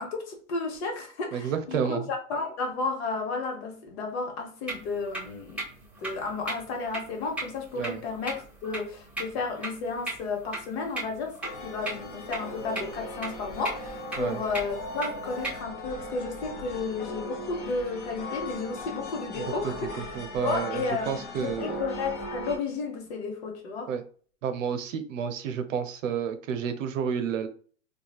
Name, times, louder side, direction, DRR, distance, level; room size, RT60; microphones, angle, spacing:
voice 1, 0.0-5.7 6.0-20.0 20.4-23.9, left 3 dB, 55° left, 3 dB, 1.1 m, -33 dB
voice 2, 1.3-2.1 7.7-8.0 14.2-14.4 19.3-21.8 23.9-24.0 24.4-27.5, right 7 dB, 75° right, 9 dB, 0.6 m, -31 dB
sound 1, 4.7-15.6, right 2 dB, 5° right, 1.0 m, -39 dB
sound 2, 11.4-22.6, left 2 dB, 25° left, 0.5 m, -38 dB
3.1 x 2.3 x 2.3 m, 0.43 s
hypercardioid pair, 115°, 39 cm